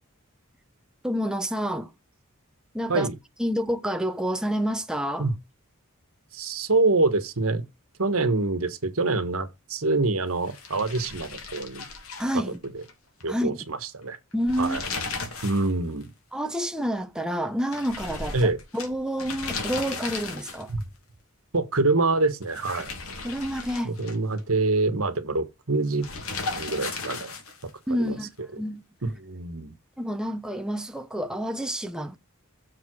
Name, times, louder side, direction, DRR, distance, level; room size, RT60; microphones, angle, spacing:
voice 1, 1.0-1.9 2.7-3.1 3.4-5.3 12.2-12.6 13.3-13.6 14.3-14.8 16.3-20.7 23.2-23.9 27.9-28.3 28.6-28.8 30.0-32.1, equal, 5° right, 0.8 m, -28 dB
voice 2, 6.3-7.6 8.0-11.8 13.2-14.2 14.6-14.8 15.4-16.1 18.3-18.6 20.7-20.8 21.5-22.9 23.8-26.1 26.4-27.3 28.0-28.2 29.0-29.7, right 3 dB, 75° right, 1.5 m, -25 dB
sound 1, 10.4-12.9 13.2-13.3 14.3-15.7 16.0-16.1 17.7-20.8 22.4-24.4 26.0-27.7, left 4 dB, 75° left, 2.8 m, -35 dB
7.1 x 4.7 x 6.2 m
head